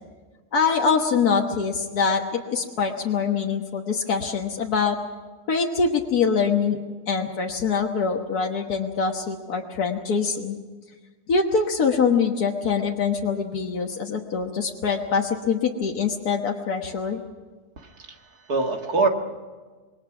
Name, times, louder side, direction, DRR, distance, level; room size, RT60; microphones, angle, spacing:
voice 1, 0.5-5.0 5.5-6.8 7.1-10.6 11.3-17.2, left 5 dB, 85° left, 1 dB, 1.9 m, -24 dB
voice 2, 17.8-19.1, right 3 dB, 90° right, 3 dB, 2.5 m, -25 dB
26.0 x 21.5 x 6.1 m, 1.4 s
omnidirectional pair, 1.6 m